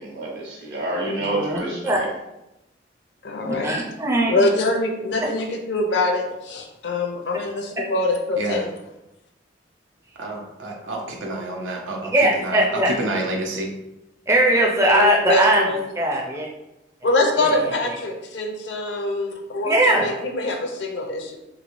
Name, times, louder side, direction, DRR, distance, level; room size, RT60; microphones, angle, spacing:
voice 1, 0.0-2.1, right 1 dB, 65° right, 1.1 m, -28 dB
voice 2, 1.2-2.0 3.4-4.3 12.1-12.9 14.3-15.6 16.0-16.5 17.4-17.9 19.6-20.1, right 1 dB, 15° right, 0.4 m, -20 dB
voice 3, 3.2-3.7 4.3-8.7 14.9-15.8 17.0-21.4, left 2 dB, 65° left, 0.5 m, -24 dB
voice 4, 8.4-8.7 10.2-13.7, right 2 dB, 80° right, 0.6 m, -29 dB
3.4 x 3.0 x 2.5 m
head